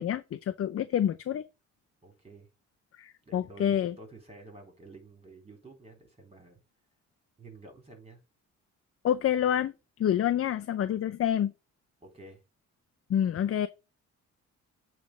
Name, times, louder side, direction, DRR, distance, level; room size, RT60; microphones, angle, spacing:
voice 1, 0.0-1.4 2.9-3.9 9.0-9.7 10.0-11.5 13.1-13.7, left 10 dB, 50° left, 0.6 m, -27 dB
voice 2, 2.0-2.5 3.2-6.6 7.4-8.2 10.3-10.4 12.0-12.4, right 2 dB, 20° right, 3.8 m, -51 dB
8.5 x 3.5 x 5.1 m
cardioid pair, 90°, 30 cm